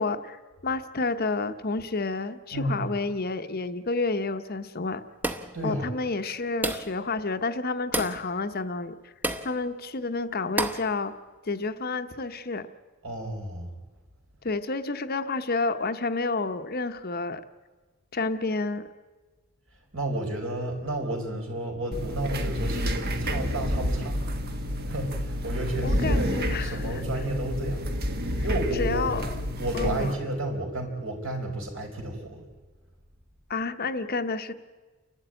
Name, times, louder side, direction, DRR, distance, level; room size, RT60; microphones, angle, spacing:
voice 1, 0.0-5.0 5.6-9.1 9.4-11.2 11.4-12.7 14.4-17.4 18.1-18.9 25.8-27.0 28.8-29.3 29.7-30.1 33.5-34.5, left 3 dB, 45° left, 9 dB, 0.8 m, -30 dB
voice 2, 2.5-2.8 5.5-5.9 13.0-13.7 19.9-24.2 24.9-27.9 28.4-29.1 29.6-32.4, right 1 dB, 60° right, 2 dB, 4.5 m, -31 dB
sound 1, 5.2-5.6 6.6-7.0 7.9-8.2 9.2-9.5 10.6-10.9, right 1 dB, 10° right, 0.9 m, -29 dB
sound 2, 21.9-30.1, equal, 45° right, 1.4 m, -29 dB
29.5 x 12.0 x 8.9 m, 1.3 s
head